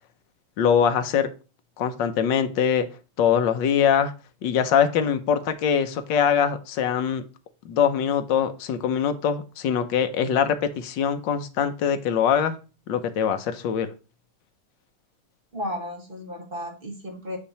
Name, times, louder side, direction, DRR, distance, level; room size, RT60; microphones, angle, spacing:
voice 1, 0.6-1.3 1.8-2.9 3.2-4.1 4.4-7.2 7.6-12.6 12.9-13.9, left 8 dB, 65° left, 9 dB, 1.3 m, -23 dB
voice 2, 15.5-17.4, left 1 dB, 30° right, 2 dB, 1.3 m, -34 dB
8.5 x 3.0 x 5.5 m, 0.33 s
omnidirectional pair, 2.4 m